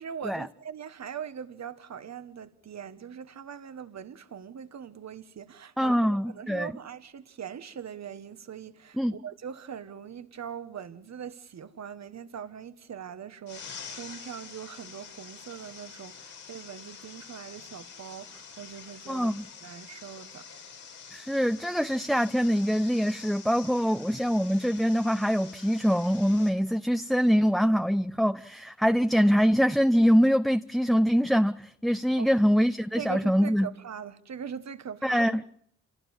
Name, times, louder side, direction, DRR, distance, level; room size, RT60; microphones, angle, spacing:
voice 1, 0.0-19.4 19.6-20.4 32.2-32.3 33.0-35.4, right 8 dB, 65° right, 1.6 m, -41 dB
voice 2, 5.8-6.7 9.0-9.1 19.1-19.5 21.1-33.7 35.0-35.4, equal, ahead, 0.9 m, -24 dB
sound 1, 13.5-26.5, left 6 dB, 85° left, 5.2 m, -47 dB
28.0 x 17.5 x 7.4 m
supercardioid pair, 45°, 29 cm